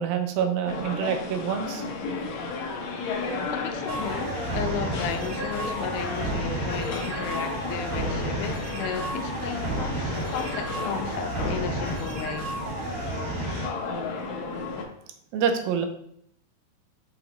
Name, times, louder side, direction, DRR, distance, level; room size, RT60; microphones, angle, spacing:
voice 1, 0.0-1.9 14.5-14.6 15.3-15.9, right 7 dB, 90° right, 2.6 m, -27 dB
sound 1, 0.7-14.8, left 3 dB, 65° left, 1.8 m, -34 dB
sound 2, 2.8-11.0, left 3 dB, 50° left, 2.3 m, -44 dB
voice 2, 3.5-12.5, left 8 dB, 80° left, 2.4 m, -34 dB
sound 3, 3.9-13.7, right 2 dB, 75° right, 3.7 m, -32 dB
5.9 x 4.9 x 4.0 m
omnidirectional pair, 4.1 m